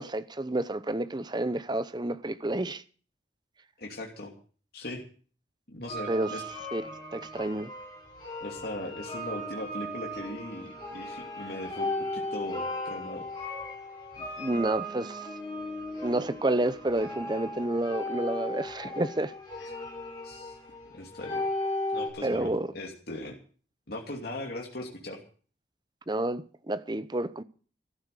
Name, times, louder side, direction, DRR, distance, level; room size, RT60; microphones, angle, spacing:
voice 1, 0.0-2.8 6.1-6.3 6.7-6.8 7.1-7.7 14.4-15.3 16.0-19.3 22.2-22.7 26.1-27.4, right 1 dB, 25° right, 0.7 m, -29 dB
voice 2, 3.8-4.3 4.7-5.0 5.7-6.4 8.4-13.3 19.6-19.7 20.2-20.6 20.8-21.4 21.9-23.4 23.9-25.2, left 1 dB, 55° left, 2.8 m, -39 dB
sound 1, 5.9-22.1, left 1 dB, 25° left, 7.3 m, -36 dB
14.0 x 12.0 x 6.7 m
head